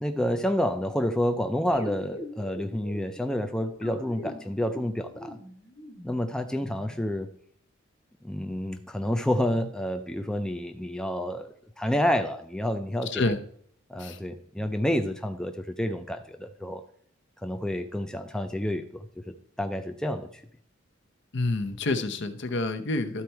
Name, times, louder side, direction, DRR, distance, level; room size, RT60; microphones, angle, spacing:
voice 1, 0.0-5.4 6.0-7.3 8.2-13.3 13.9-16.8 17.4-20.4, left 1 dB, 5° left, 0.4 m, -29 dB
sound 1, 1.7-7.2, left 1 dB, 40° left, 1.5 m, -42 dB
voice 2, 13.1-13.4 14.0-14.2 21.3-23.2, left 2 dB, 60° left, 0.8 m, -28 dB
12.5 x 4.3 x 4.6 m
head